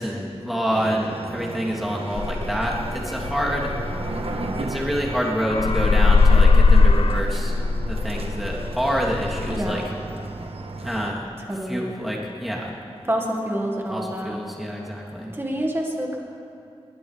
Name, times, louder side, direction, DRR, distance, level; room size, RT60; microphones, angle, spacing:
voice 1, 0.0-3.7 4.6-7.5 7.8-9.8 10.8-11.3 11.6-12.7 13.9-15.3, equal, ahead, -4 dB, 3.3 m, -27 dB
sound 1, 0.7-11.1, right 2 dB, 65° right, 1.4 m, -34 dB
sound 2, 2.2-5.2 5.5-9.7, left 4 dB, 60° left, 0.5 m, -19 dB
voice 2, 9.5-9.9 11.5-11.9 13.1-14.4 15.3-16.2, right 1 dB, 20° right, 0 dB, 2.0 m, -27 dB
21.5 x 19.0 x 3.5 m, 2.8 s
wide cardioid pair, 80°, 11 cm